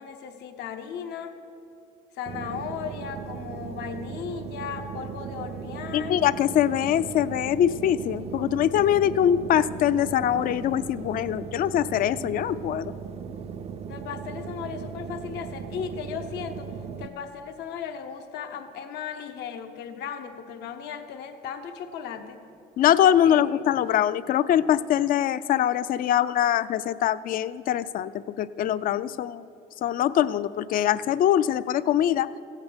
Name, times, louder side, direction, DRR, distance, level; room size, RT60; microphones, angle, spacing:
voice 1, 0.0-1.4 2.1-6.2 13.9-16.7 17.0-22.4 23.2-23.6, left 7 dB, 80° left, 6 dB, 0.9 m, -36 dB
sound 1, 2.3-17.1, right 7 dB, 40° right, 0.4 m, -37 dB
voice 2, 5.9-12.9 22.8-28.1 28.4-29.5 29.8-32.3, left 10 dB, 55° left, 16 dB, 0.4 m, -23 dB
15.5 x 8.2 x 5.2 m, 2.5 s
cardioid pair, 110°, 17 cm